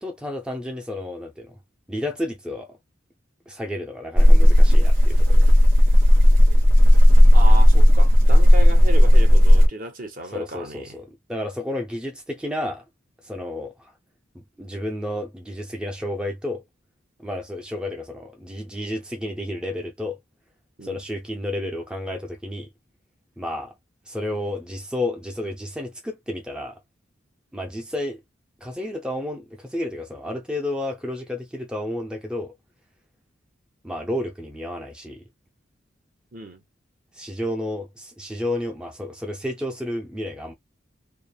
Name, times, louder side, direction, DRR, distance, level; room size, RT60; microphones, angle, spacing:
voice 1, 0.0-1.6 1.9-2.8 3.5-5.3 10.3-12.8 13.2-13.9 14.3-16.6 17.2-20.2 20.8-22.7 23.4-23.7 24.1-26.8 27.5-28.2 28.6-32.5 33.8-35.2 37.1-40.5, left 1 dB, 5° right, 0.5 m, -31 dB
sound 1, 4.2-9.7, equal, 75° right, 0.9 m, -12 dB
voice 2, 7.3-11.0 20.8-21.0 36.3-36.6, right 1 dB, 45° right, 0.9 m, -34 dB
3.2 x 2.0 x 2.2 m
head